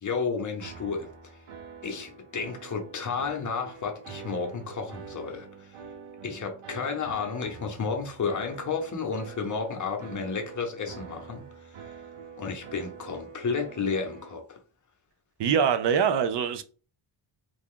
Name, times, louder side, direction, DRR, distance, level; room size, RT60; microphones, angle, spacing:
voice 1, 0.0-1.1 1.8-5.8 6.2-11.9 12.4-14.6, left 5 dB, 35° left, 0.8 m, -32 dB
sound 1, 0.6-14.3, right 6 dB, 80° right, 0.8 m, -46 dB
voice 2, 15.4-16.6, right 7 dB, 55° right, 0.5 m, -23 dB
3.2 x 2.3 x 3.6 m
wide cardioid pair, 125°, 50 cm